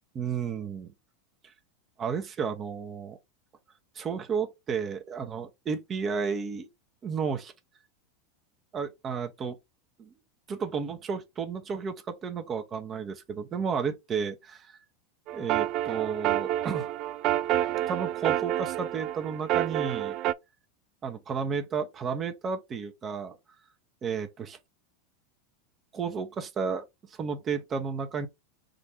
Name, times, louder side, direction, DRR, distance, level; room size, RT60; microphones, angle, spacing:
voice 1, 0.1-0.9 1.4-1.5 2.0-3.2 3.9-6.7 7.0-7.5 8.7-9.6 10.0-10.1 10.5-14.8 15.3-16.9 17.9-20.2 21.0-23.4 24.0-24.6 25.9-28.3, right 6 dB, 30° right, 0.9 m, -32 dB
sound 1, 15.3-20.3, right 13 dB, 50° right, 0.3 m, -28 dB
3.8 x 2.6 x 4.4 m
hypercardioid pair, 100°, 0 cm